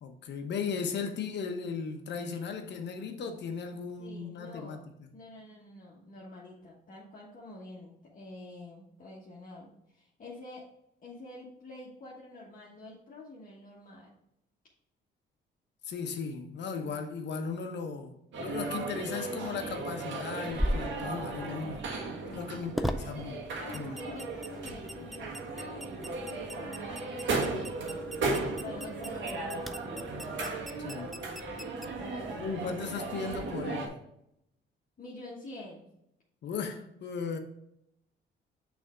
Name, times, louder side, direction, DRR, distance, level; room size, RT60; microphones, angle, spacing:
voice 1, 0.0-5.1 15.8-21.9 22.3-23.4 23.7-23.9 30.8-31.1 32.4-33.9 36.4-37.4, left 5 dB, 60° left, 1.0 m, -36 dB
voice 2, 4.0-4.9 5.1-10.7 11.0-14.2 22.4-22.6 23.6-28.1 28.6-30.1 32.0-32.6 35.0-35.9, left 2 dB, 45° left, 1.4 m, -47 dB
sound 1, 18.3-33.9, right 3 dB, 70° right, 1.3 m, -36 dB
sound 2, 20.5-32.7, equal, ahead, 0.4 m, -40 dB
6.3 x 3.5 x 5.0 m
cardioid pair, 90°, 20 cm